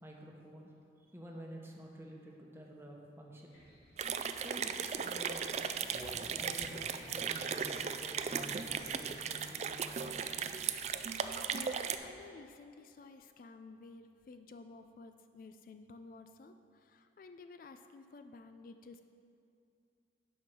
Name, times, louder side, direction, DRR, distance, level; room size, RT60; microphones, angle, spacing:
voice 1, 0.0-0.7 1.0-3.6 4.4-5.6 6.1-10.7, right 1 dB, 15° right, -1 dB, 1.0 m, -50 dB
sound 1, 3.5-12.1, equal, 80° left, 2.1 m, -58 dB
sound 2, 4.0-12.0, right 7 dB, 40° right, 0.3 m, -37 dB
Human voice, 5.9-9.5 9.9-10.0 10.4-10.5, equal, 15° left, 0.8 m, -52 dB
voice 2, 11.5-19.0, left 3 dB, 50° left, 8 dB, 0.3 m, -53 dB
9.4 x 5.4 x 6.1 m, 2.5 s
head